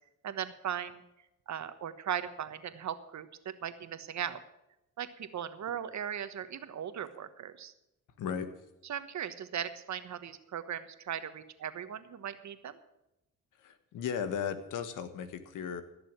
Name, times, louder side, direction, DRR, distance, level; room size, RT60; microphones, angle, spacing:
voice 1, 0.2-1.0 1.5-4.4 5.0-7.7 8.8-12.8, right 9 dB, 65° right, 11 dB, 1.3 m, -38 dB
voice 2, 8.2-8.5 13.6-15.8, left 7 dB, 80° left, 10 dB, 1.5 m, -36 dB
16.0 x 6.9 x 9.0 m, 0.90 s
cardioid pair, 75°, 31 cm